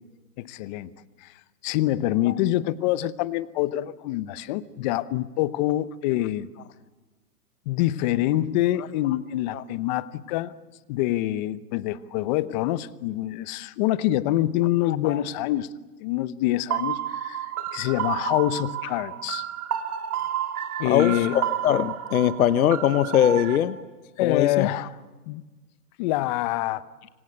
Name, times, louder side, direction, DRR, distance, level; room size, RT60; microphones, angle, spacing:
voice 1, 0.4-0.9 1.2-1.3 1.6-6.5 7.7-10.5 10.9-15.7 16.0-19.5 20.8-21.4 24.2-25.0 25.3-25.4 26.0-26.8, left 15 dB, 30° left, 16 dB, 0.9 m, -26 dB
voice 2, 14.9-15.2 20.8-23.7 24.2-24.7, left 10 dB, 65° left, 13 dB, 1.1 m, -22 dB
sound 1, 16.7-23.6, right 11 dB, 75° right, 2.8 m, -31 dB
26.0 x 24.5 x 8.1 m, 1.2 s
hypercardioid pair, 135°, 45 cm